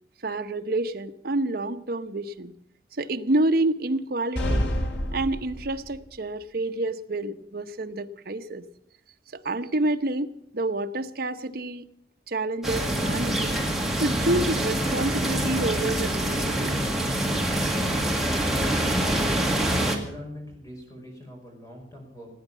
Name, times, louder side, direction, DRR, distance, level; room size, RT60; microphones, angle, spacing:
voice 1, 0.2-2.5 2.9-4.7 5.1-8.6 9.3-11.9 12.3-13.6 14.0-16.8, right 2 dB, 55° right, 8 dB, 0.9 m, -28 dB
sound 1, 4.4-6.0, equal, 85° left, 2.5 m, -28 dB
sound 2, 12.6-20.0, right 1 dB, ahead, 2.0 m, -25 dB
voice 2, 19.8-22.3, left 1 dB, 20° left, 1 dB, 4.8 m, -44 dB
18.0 x 9.2 x 8.5 m, 0.74 s
head